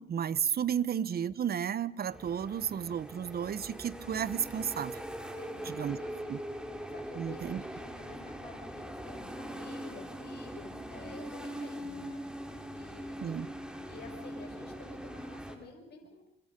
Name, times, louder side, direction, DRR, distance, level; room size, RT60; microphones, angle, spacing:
voice 1, 0.0-5.0 5.7-6.0 6.3-6.4 7.1-7.6 13.2-13.5, right 8 dB, 50° right, 17 dB, 1.0 m, -33 dB
sound 1, 2.1-15.6, equal, 5° right, 4.2 m, -42 dB
voice 2, 5.3-6.2 6.9-13.5 13.9-16.3, left 4 dB, 55° left, 2 dB, 5.7 m, -51 dB
26.0 x 26.0 x 5.3 m, 0.75 s
cardioid pair, 90°, 20 cm